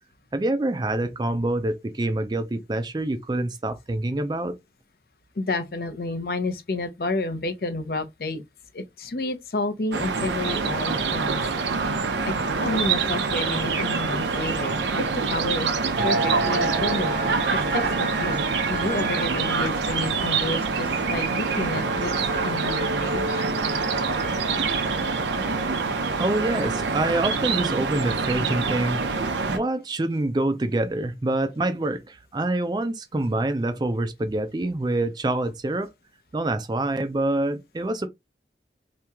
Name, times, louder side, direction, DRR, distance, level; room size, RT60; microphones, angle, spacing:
voice 1, 0.3-4.6 26.2-29.1 29.5-35.9 36.3-38.1, right 2 dB, 25° right, 0.4 m, -26 dB
voice 2, 5.4-8.4 8.7-11.4 12.2-12.3 12.6-15.7 16.0-17.4 17.7-22.1 22.4-23.4, left 2 dB, 55° left, 0.6 m, -30 dB
sound 1, 9.9-29.6, right 4 dB, 90° right, 0.7 m, -26 dB
sound 2, 16.0-27.4, right 2 dB, 50° right, 0.7 m, -32 dB
3.0 x 2.8 x 3.4 m
head